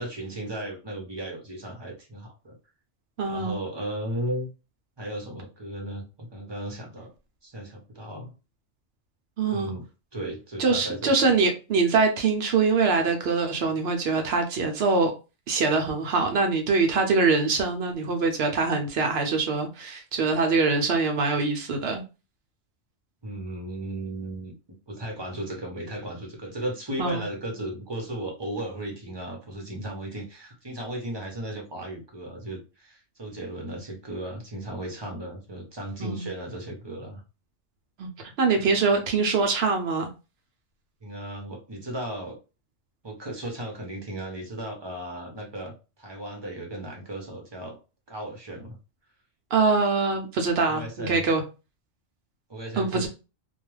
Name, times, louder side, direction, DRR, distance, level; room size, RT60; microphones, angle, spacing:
voice 1, 0.0-2.6 3.3-4.5 5.0-7.1 7.4-8.3 9.5-9.9 10.1-11.3 23.2-37.2 41.0-42.4 43.0-47.8 48.1-48.8 50.7-51.2 52.5-53.1, right 1 dB, 30° right, 0.6 m, -35 dB
voice 2, 3.2-3.6 9.4-9.7 10.6-15.1 15.5-22.0 27.0-27.2 36.0-36.3 38.0-40.1 49.5-51.4 52.8-53.1, right 4 dB, 65° right, 0.7 m, -24 dB
2.3 x 2.3 x 3.1 m
omnidirectional pair, 1.3 m